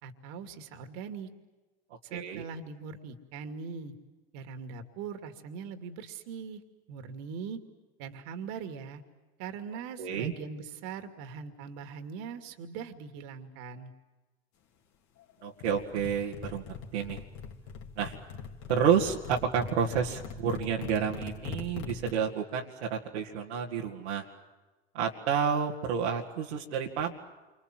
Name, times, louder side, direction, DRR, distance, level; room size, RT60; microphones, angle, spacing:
voice 1, 0.0-1.3 2.0-3.9 4.3-6.6 6.9-7.6 8.0-9.0 9.4-13.9, right 6 dB, 70° right, 7 dB, 2.6 m, -41 dB
voice 2, 2.1-2.4 10.0-10.3 15.4-16.6 16.9-17.2 18.0-18.2 18.7-24.2 24.9-27.2, right 7 dB, 90° right, -3 dB, 2.2 m, -30 dB
sound 1, 15.6-22.1, left 6 dB, 60° left, 2.9 m, -42 dB
28.5 x 25.5 x 7.7 m, 1.2 s
hypercardioid pair, 85°, 33 cm